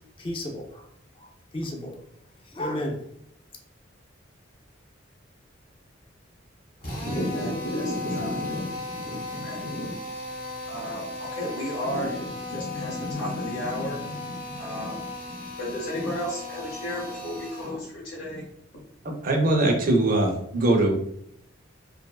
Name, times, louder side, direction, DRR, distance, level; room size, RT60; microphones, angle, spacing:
voice 1, 0.2-0.9 1.2-2.0 2.5-3.0, left 1 dB, 25° left, 1 dB, 0.4 m, -33 dB
Drill, 6.8-17.8, left 2 dB, 50° left, 0.8 m, -36 dB
voice 2, 7.0-10.1 10.6-18.5 18.7-18.8, equal, 85° left, -6 dB, 0.8 m, -33 dB
voice 3, 19.2-21.0, right 2 dB, 45° right, 1 dB, 0.4 m, -21 dB
2.6 x 2.2 x 2.3 m, 0.71 s
head